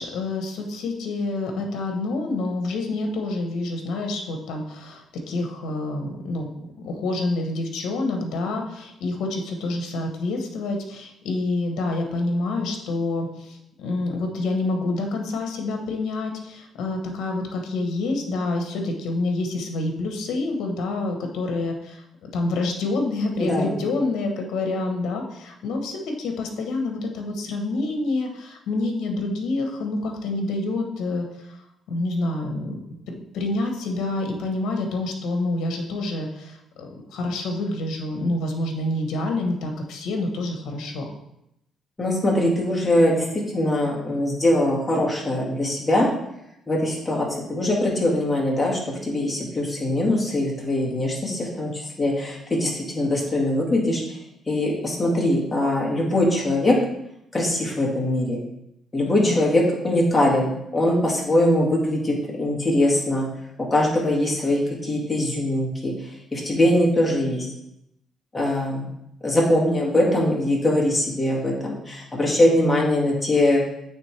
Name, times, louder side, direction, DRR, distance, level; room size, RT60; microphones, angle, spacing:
voice 1, 0.0-31.6 31.9-32.8 33.1-41.1 59.0-59.4, left 2 dB, 85° left, 3 dB, 1.0 m, -27 dB
voice 2, 23.4-23.8 42.0-46.1 46.7-54.2 54.5-56.8 57.3-58.4 58.9-63.3 63.7-67.5 68.3-68.9 69.2-73.6, left 1 dB, 20° left, -4 dB, 1.9 m, -22 dB
8.7 x 3.5 x 3.3 m, 0.81 s
cardioid pair, 90°, 0 cm